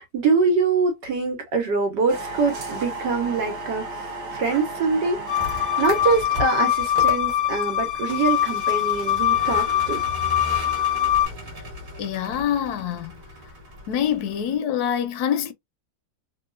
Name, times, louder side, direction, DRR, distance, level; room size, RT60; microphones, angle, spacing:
voice 1, 0.0-3.9 4.3-10.0, right 4 dB, 90° right, 1.8 m, -24 dB
sound 1, 2.1-9.5, right 2 dB, 75° right, 1.4 m, -36 dB
Vehicle, 5.2-14.6, left 1 dB, 55° right, 1.8 m, -37 dB
sound 2, 5.3-11.2, left 11 dB, 45° left, 0.7 m, -23 dB
voice 2, 12.0-13.1 13.9-15.5, left 9 dB, 75° left, 1.0 m, -25 dB
3.6 x 2.4 x 2.4 m
omnidirectional pair, 1.8 m